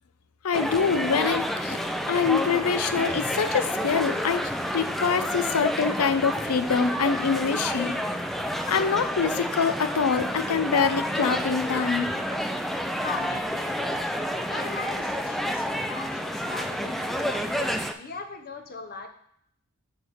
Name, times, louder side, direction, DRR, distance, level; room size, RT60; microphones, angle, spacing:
voice 1, 0.4-8.0 8.7-12.1, left 6 dB, 85° left, 10 dB, 0.6 m, -25 dB
sound 1, 0.5-17.9, equal, ahead, 0.4 m, -29 dB
voice 2, 13.0-14.0 14.5-19.1, left 4 dB, 45° left, 5 dB, 0.9 m, -39 dB
8.0 x 3.5 x 6.4 m, 0.69 s
head